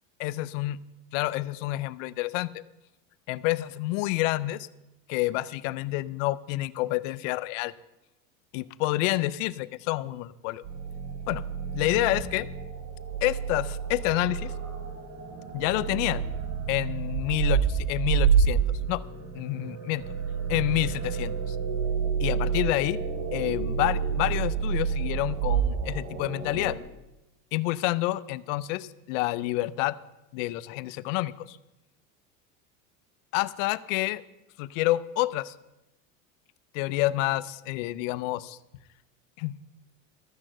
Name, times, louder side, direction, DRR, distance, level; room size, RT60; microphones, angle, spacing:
voice 1, 0.2-0.8 1.1-2.6 3.3-4.7 5.1-7.7 8.5-10.6 11.3-11.4 11.7-12.5 13.2-14.5 15.5-16.2 16.7-18.6 18.9-19.0 19.3-20.0 20.5-21.6 22.2-23.0 23.3-26.7 27.5-30.0 30.3-31.6 33.3-34.2 34.6-35.5 36.7-38.6 39.4-39.6, left 17 dB, 70° left, 17 dB, 0.7 m, -28 dB
sound 1, 10.6-26.8, right 6 dB, 40° right, 2.8 m, -29 dB
14.0 x 7.3 x 7.8 m, 0.94 s
supercardioid pair, 120°, 39 cm